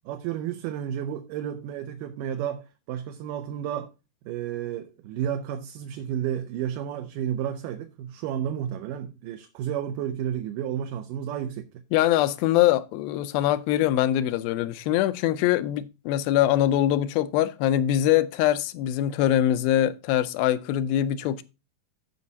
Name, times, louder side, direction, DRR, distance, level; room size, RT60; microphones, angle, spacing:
voice 1, 0.1-3.9 4.3-11.7, right 10 dB, 75° right, 2.1 m, -32 dB
voice 2, 11.9-21.4, left 12 dB, 85° left, 2.4 m, -23 dB
16.0 x 5.4 x 2.7 m
omnidirectional pair, 4.2 m